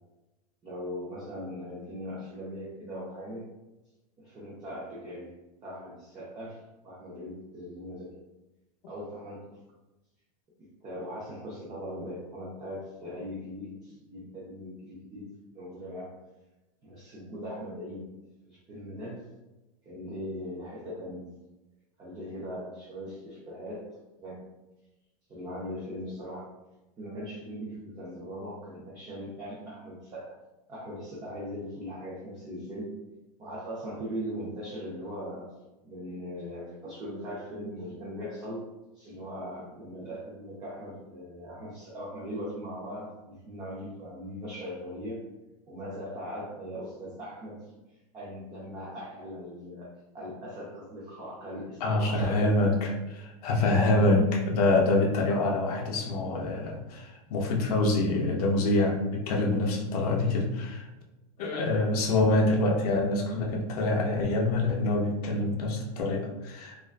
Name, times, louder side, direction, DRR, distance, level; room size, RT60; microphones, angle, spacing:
voice 1, 0.6-3.5 4.2-5.3 5.6-8.2 8.8-9.6 10.6-16.2 16.8-18.1 18.5-19.3 19.8-21.3 22.0-24.4 25.3-26.5 27.0-30.4 30.7-33.0 33.4-35.5 35.8-38.7 38.9-45.3 45.7-47.7 48.1-52.4 55.9-56.1 56.9-57.0, equal, 15° right, -7 dB, 0.4 m, -40 dB
voice 2, 51.8-60.9 61.4-66.8, left 2 dB, 70° left, 0 dB, 0.5 m, -26 dB
2.4 x 2.2 x 2.4 m, 1.0 s
supercardioid pair, 155°, 20 cm